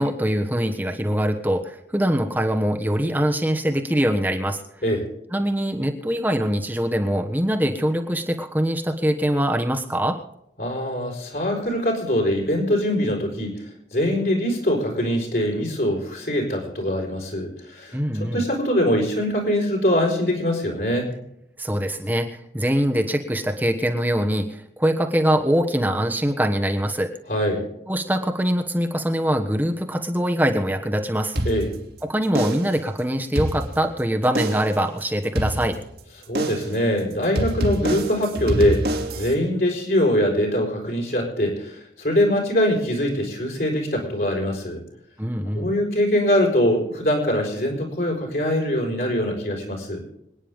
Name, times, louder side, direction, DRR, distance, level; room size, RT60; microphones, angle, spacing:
voice 1, 0.0-4.6 5.3-10.2 17.9-18.5 21.6-27.1 27.9-31.4 32.0-35.8 45.2-45.7, equal, 10° right, 3 dB, 1.3 m, -23 dB
voice 2, 10.6-13.6 13.9-21.1 27.3-27.6 31.4-31.7 36.3-38.9 39.1-44.8 45.5-50.0, equal, 60° left, 0 dB, 4.6 m, -23 dB
sound 1, 31.3-32.0 32.3-32.8 33.2-34.0 34.3-34.8 35.3-36.0 36.3-36.8 37.3-39.3, right 1 dB, 70° right, 2.6 m, -26 dB
26.0 x 9.9 x 3.6 m, 0.81 s
head